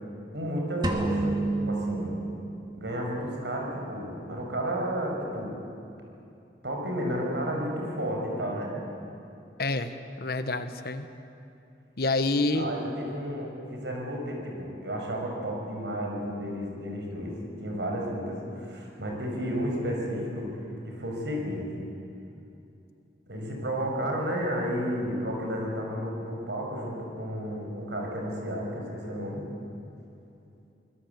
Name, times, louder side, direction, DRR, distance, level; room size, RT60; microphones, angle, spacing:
voice 1, 0.3-2.2 2.7-5.5 6.6-8.8 12.5-20.6 20.9-21.7 23.3-29.4, equal, 80° right, 0 dB, 5.9 m, -32 dB
sound 1, 0.8-2.9, right 2 dB, 25° right, 2.3 m, -29 dB
voice 2, 9.6-11.1 12.0-12.7, left 2 dB, 60° left, 10 dB, 1.2 m, -28 dB
25.0 x 21.0 x 8.2 m, 2.6 s
head